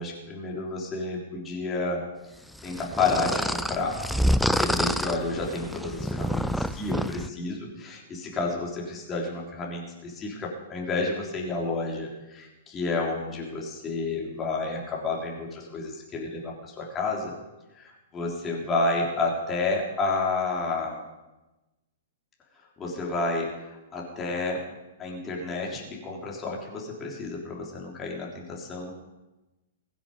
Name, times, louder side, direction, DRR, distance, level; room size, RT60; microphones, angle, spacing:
voice 1, 0.0-2.0 2.6-4.0 4.5-17.3 17.7-21.0 22.8-24.6 25.0-28.9, left 3 dB, 20° left, -2 dB, 3.4 m, -30 dB
sound 1, 2.6-7.3, equal, ahead, 0.5 m, -27 dB
22.0 x 7.6 x 5.3 m, 1.0 s
figure-of-eight pair, 110°, 0 cm